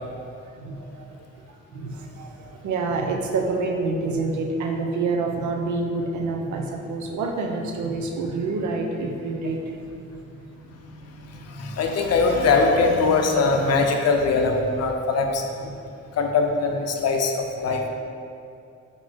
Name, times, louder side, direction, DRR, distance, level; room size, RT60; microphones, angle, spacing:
voice 1, 0.6-1.1 1.5-9.8 10.5-11.7 15.6-15.7 17.7-17.8, right 3 dB, 70° right, 2 dB, 0.6 m, -28 dB
voice 2, 11.3-15.4 16.1-17.9, left 4 dB, 55° left, 3 dB, 0.5 m, -21 dB
3.9 x 3.6 x 3.3 m, 2.5 s
cardioid pair, 90°, 30 cm